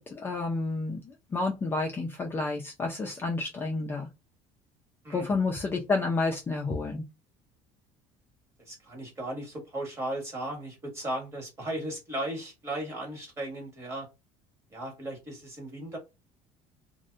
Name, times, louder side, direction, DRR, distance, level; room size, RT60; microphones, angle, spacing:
voice 1, 0.0-4.1 5.1-7.0, left 3 dB, 20° left, 0.3 m, -30 dB
voice 2, 8.7-14.1 14.7-16.0, right 1 dB, 20° right, 1.1 m, -36 dB
2.6 x 2.1 x 2.3 m
cardioid pair, 160°, 12 cm